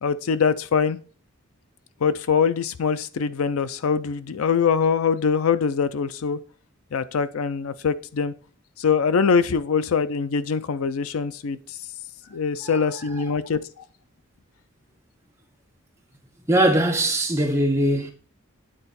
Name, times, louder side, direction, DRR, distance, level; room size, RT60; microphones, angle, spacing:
voice 1, 0.0-1.0 2.0-6.4 6.9-8.3 8.8-11.8 12.3-13.6, left 6 dB, 80° left, 0.5 m, -23 dB
voice 2, 16.5-18.1, right 1 dB, 10° right, 1.0 m, -20 dB
9.0 x 4.1 x 4.1 m
head